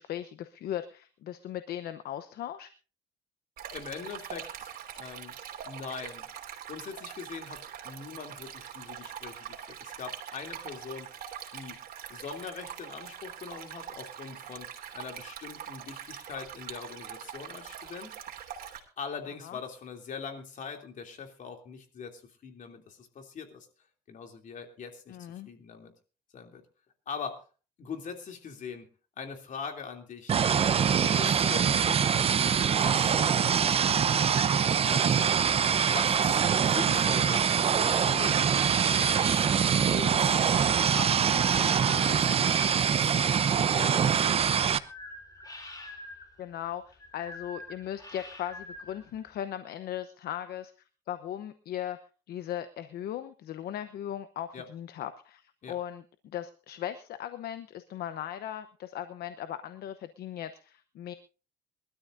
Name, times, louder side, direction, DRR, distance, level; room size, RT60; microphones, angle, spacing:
voice 1, 0.0-2.7 19.4-19.6 25.1-25.5 46.4-50.7 51.1-52.0 52.3-61.1, left 11 dB, 65° left, 10 dB, 0.9 m, -38 dB
Stream, 3.6-18.8, right 9 dB, 60° right, 3.1 m, -43 dB
voice 2, 3.7-5.4 5.6-6.3 6.7-11.1 11.5-11.8 12.1-18.1 19.0-23.7 24.1-25.9 26.3-26.6 27.1-27.4 27.8-28.9 29.2-30.3 31.0-35.4 35.8-38.4 38.9-39.5 39.9-40.4 40.9-41.2 41.5-42.6 43.0-44.4 54.5-54.7 55.6-55.8, left 5 dB, 50° left, 4 dB, 2.9 m, -42 dB
sound 1, 30.3-44.8, right 7 dB, 35° right, 0.7 m, -24 dB
sound 2, 37.1-43.2 43.6-49.4, left 2 dB, 20° left, 3.8 m, -46 dB
23.0 x 13.0 x 2.6 m, 0.36 s
cardioid pair, 110°, 17 cm